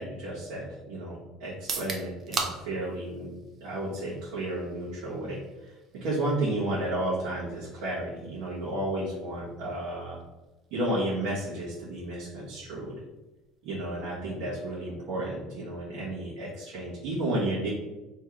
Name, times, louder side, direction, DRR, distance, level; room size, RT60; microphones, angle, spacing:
voice 1, 0.0-3.3 3.6-10.2 10.7-13.0 13.6-17.7, right 1 dB, 75° right, -8 dB, 1.3 m, -32 dB
sound 1, 1.5-15.4, right 4 dB, 30° right, 0.6 m, -43 dB
3.1 x 3.0 x 3.7 m, 1.1 s
cardioid pair, 155°, 0 cm